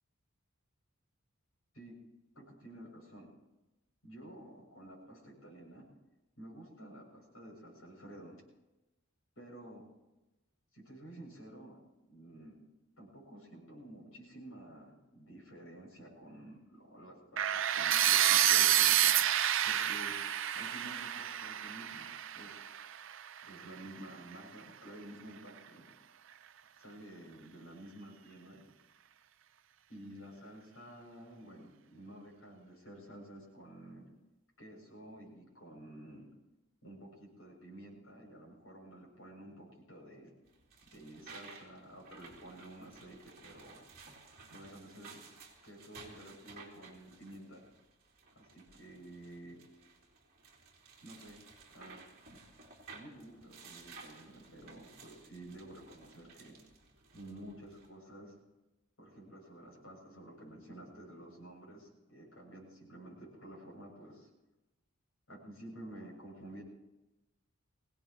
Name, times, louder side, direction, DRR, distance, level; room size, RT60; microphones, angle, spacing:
voice 1, 2.3-3.3 4.0-5.9 6.4-8.4 9.4-9.8 10.7-12.6 13.0-20.1 20.5-22.1 22.3-22.6 23.4-25.8 26.8-28.6 29.9-34.0 34.6-36.3 36.8-40.3 40.9-43.8 44.5-45.2 45.6-47.6 48.3-49.6 51.0-51.4 51.7-52.0 52.3-52.4 52.9-56.6 57.1-58.3 59.0-64.3 65.3-66.6, right 1 dB, 65° left, -2 dB, 7.4 m, -51 dB
sound 1, 17.4-23.3, right 11 dB, 60° right, 0.5 m, -29 dB
sound 2, 40.5-57.9, right 4 dB, 40° right, 3.4 m, -56 dB
23.5 x 17.5 x 3.1 m, 1.0 s
head